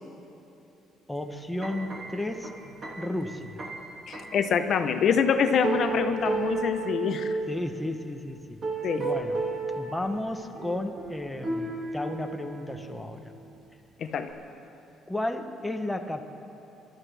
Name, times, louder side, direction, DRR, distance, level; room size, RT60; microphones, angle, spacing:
voice 1, 1.1-2.5 3.0-3.6 7.5-8.6 9.0-9.4 9.7-13.3 15.1-16.2, left 1 dB, 5° left, 4 dB, 0.7 m, -33 dB
sound 1, 1.4-4.5 5.1-5.2 5.6-7.5 8.5-10.1 10.5-12.9 13.3-13.7 14.3-14.4, right 3 dB, 35° right, 2.1 m, -33 dB
voice 2, 4.1-7.3 8.8-9.1 14.0-14.3, left 6 dB, 45° left, 8 dB, 0.7 m, -25 dB
27.5 x 13.0 x 3.4 m, 2.9 s
cardioid pair, 155°, 0 cm